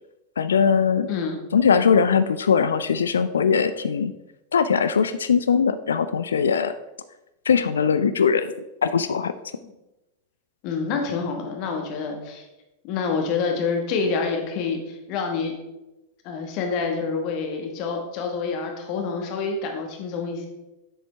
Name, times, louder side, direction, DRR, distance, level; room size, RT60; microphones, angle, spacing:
voice 1, 0.4-1.1 1.5-4.1 4.5-6.7 7.5-8.5 8.8-9.3, left 6 dB, 70° left, 12 dB, 0.3 m, -20 dB
voice 2, 1.1-1.4 9.6-9.7 10.6-12.4 12.8-15.5 16.2-20.5, left 5 dB, 45° left, 3 dB, 1.4 m, -27 dB
7.7 x 6.5 x 3.4 m, 0.98 s
figure-of-eight pair, 90°, 0 cm